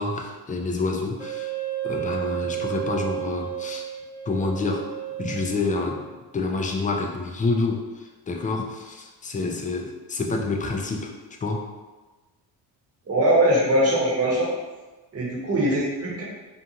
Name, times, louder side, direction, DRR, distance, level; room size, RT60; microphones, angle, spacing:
voice 1, 0.0-1.5 1.8-3.8 4.3-4.9 5.2-6.0 6.3-11.1 11.4-11.6, left 3 dB, 20° left, 2 dB, 0.4 m, -28 dB
Wind instrument woodwind instrument, 1.2-6.3, right 14 dB, 5° right, 0.8 m, -32 dB
voice 2, 13.1-14.5 15.1-16.2, right 1 dB, 30° right, -4 dB, 1.0 m, -21 dB
2.5 x 2.4 x 2.8 m, 1.2 s
supercardioid pair, 60°, 46 cm